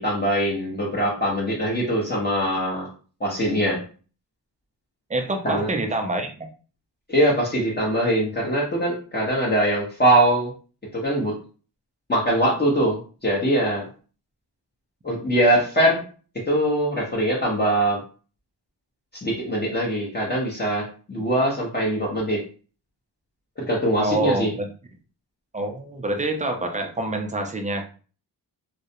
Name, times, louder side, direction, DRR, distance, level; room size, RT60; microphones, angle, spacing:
voice 1, 0.0-2.9 3.2-3.8 5.4-5.7 7.1-10.5 10.9-11.3 12.1-13.9 15.0-16.0 16.5-18.0 19.2-20.8 21.1-22.4 23.6-24.5, right 1 dB, 25° left, -5 dB, 0.8 m, -22 dB
voice 2, 5.1-6.3 24.0-24.7 25.5-27.8, right 2 dB, 20° right, 4 dB, 0.4 m, -26 dB
2.3 x 2.0 x 2.8 m, 0.38 s
cardioid pair, 95°, 41 cm